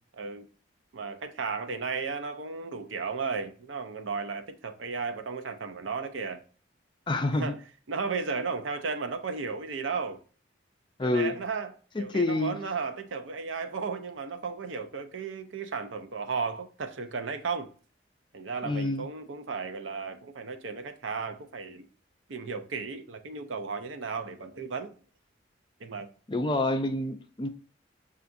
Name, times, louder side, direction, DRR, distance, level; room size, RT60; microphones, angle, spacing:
voice 1, 0.9-6.4 7.4-7.6 7.9-10.2 11.0-17.7 18.3-21.9 22.3-24.9 25.8-26.1, right 5 dB, 85° right, 0.6 m, -34 dB
voice 2, 7.1-7.5 11.0-11.3 12.0-12.6 18.6-19.1 26.3-27.5, left 2 dB, 25° left, 0.4 m, -27 dB
6.8 x 2.5 x 2.5 m
head